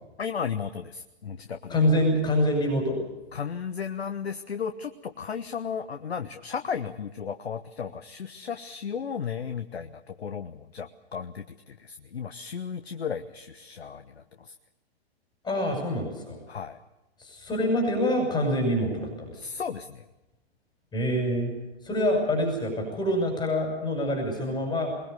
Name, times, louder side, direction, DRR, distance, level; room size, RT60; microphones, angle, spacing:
voice 1, 0.2-1.8 3.3-14.5 16.5-16.8 19.4-20.0, left 7 dB, 75° left, 9 dB, 1.2 m, -35 dB
voice 2, 1.7-3.0 15.4-16.4 17.2-19.4 20.9-21.5 21.8-24.9, left 1 dB, 15° left, 2 dB, 6.5 m, -26 dB
22.0 x 21.0 x 6.8 m, 1.0 s
figure-of-eight pair, 120°, 32 cm